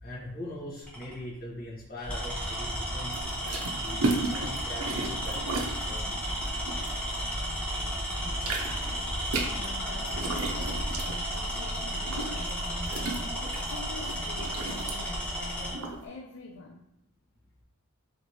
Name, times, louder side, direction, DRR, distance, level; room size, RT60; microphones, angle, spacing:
voice 1, 0.0-3.2 3.8-6.2, left 1 dB, 40° left, -7 dB, 1.3 m, -41 dB
Tools, 0.8-1.1 2.0-15.8, equal, 5° left, 0.9 m, -33 dB
sound 1, 3.1-7.7 8.0-16.0, right 3 dB, 75° right, 0.6 m, -35 dB
voice 2, 8.1-8.6 9.3-16.9, left 2 dB, 60° left, 0 dB, 0.4 m, -45 dB
3.2 x 3.1 x 2.7 m, 0.85 s
head